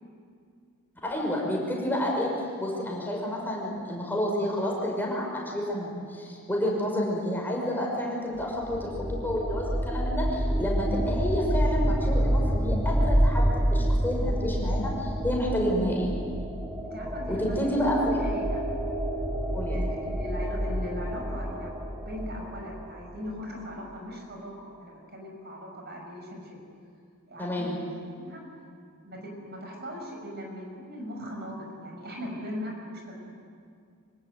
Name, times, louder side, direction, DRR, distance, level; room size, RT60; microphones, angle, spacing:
voice 1, 1.0-2.3 2.6-16.1 17.3-18.0 19.5-19.9 27.4-27.8, equal, 10° left, -2 dB, 5.9 m, -29 dB
sound 1, 8.4-23.2, equal, 15° right, 1.6 m, -28 dB
voice 2, 16.8-17.4 17.7-18.6 19.5-26.6 27.3-27.7 28.2-28.4 29.0-33.2, equal, 45° right, 1 dB, 5.8 m, -39 dB
25.0 x 25.0 x 9.4 m, 2.3 s
head